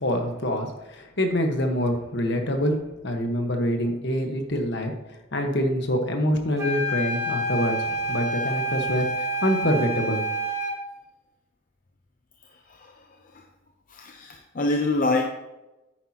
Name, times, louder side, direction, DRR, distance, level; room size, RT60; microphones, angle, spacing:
voice 1, 0.0-2.8 3.0-4.9 5.3-10.2, equal, 60° left, 4 dB, 1.3 m, -25 dB
sound 1, 6.6-10.8, right 1 dB, 15° right, 1.3 m, -28 dB
voice 2, 12.7-13.0 13.3-13.4 13.9-15.2, left 2 dB, 40° left, 3 dB, 0.6 m, -26 dB
10.0 x 8.9 x 2.9 m, 1.0 s
head